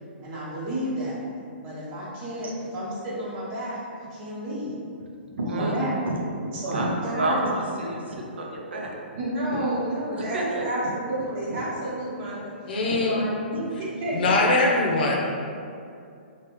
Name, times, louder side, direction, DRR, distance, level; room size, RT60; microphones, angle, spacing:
voice 1, 0.2-1.2 1.6-4.7 5.4-5.9 6.5-7.4 7.8-7.9 9.2-12.4 12.7-14.4, right 1 dB, 35° right, -8 dB, 1.3 m, -31 dB
voice 2, 5.4-5.8 6.1-8.9 10.1-10.6 11.5-11.6 12.9-13.0 13.5-13.6, right 1 dB, 75° right, -1 dB, 0.5 m, -29 dB
voice 3, 12.6-13.1 14.1-15.1, left 2 dB, 60° left, -2 dB, 0.7 m, -22 dB
3.3 x 2.3 x 3.1 m, 2.4 s
hypercardioid pair, 130°, 6 cm